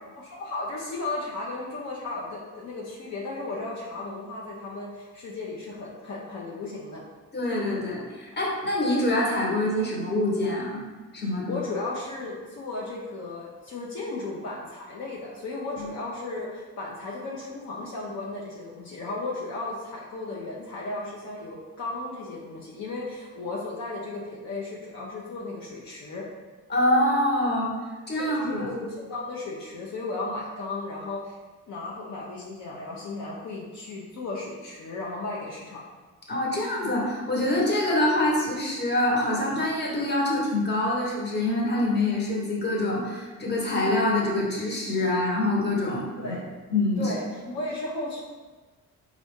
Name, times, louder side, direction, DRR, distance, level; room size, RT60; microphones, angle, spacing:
voice 1, 0.1-7.0 11.5-26.2 28.2-31.4 31.7-35.8 46.2-46.4 47.0-48.2, left 2 dB, 65° left, -4 dB, 0.7 m, -35 dB
voice 2, 7.3-10.8 11.1-11.6 15.8-15.9 26.7-27.7 28.1-28.7 36.3-46.3 46.7-47.1, left 1 dB, 35° left, -3 dB, 1.1 m, -25 dB
4.0 x 2.4 x 3.6 m, 1.3 s
cardioid pair, 90°, 30 cm